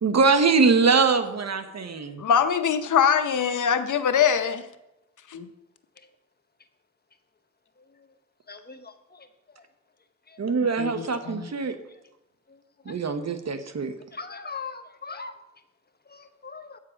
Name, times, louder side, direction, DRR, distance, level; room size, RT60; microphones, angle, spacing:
voice 1, 0.0-2.3 10.4-11.8 12.9-13.9, right 4 dB, 60° right, 8 dB, 1.0 m, -23 dB
voice 2, 2.2-4.6 5.3-5.5 10.5-11.5, left 7 dB, 90° left, 10 dB, 0.7 m, -23 dB
voice 3, 8.5-8.9 14.1-15.3 16.1-16.8, left 4 dB, 35° left, 8 dB, 1.0 m, -39 dB
8.3 x 7.4 x 5.1 m, 0.89 s
cardioid pair, 60°, 30 cm